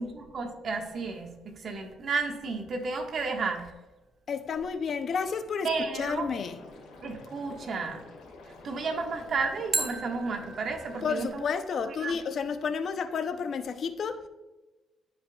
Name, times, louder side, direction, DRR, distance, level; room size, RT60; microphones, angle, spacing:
voice 1, 0.0-3.7 5.6-6.3 7.0-8.0 8.6-11.4 11.8-12.2, right 4 dB, 55° right, 1.5 m, -32 dB
sound 1, 1.7-2.7 9.7-12.7, right 2 dB, 25° right, 1.0 m, -38 dB
voice 2, 4.3-6.7 11.0-14.3, left 6 dB, 55° left, 0.6 m, -31 dB
Liquid, 6.3-11.3, left 3 dB, 85° left, 2.4 m, -49 dB
14.0 x 5.3 x 2.3 m
cardioid pair, 90°, 0 cm